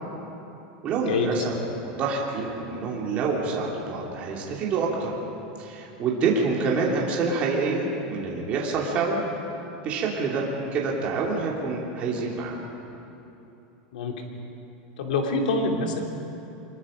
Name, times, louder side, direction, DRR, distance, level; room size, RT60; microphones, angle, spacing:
voice 1, 0.8-1.5 1.8-5.1 5.6-9.2 9.8-10.4 10.7-12.6, right 4 dB, 30° right, -3 dB, 3.0 m, -27 dB
voice 2, 15.0-16.0, left 3 dB, 90° left, 2 dB, 3.0 m, -25 dB
25.0 x 21.5 x 5.3 m, 2.9 s
supercardioid pair, 165°, 4 cm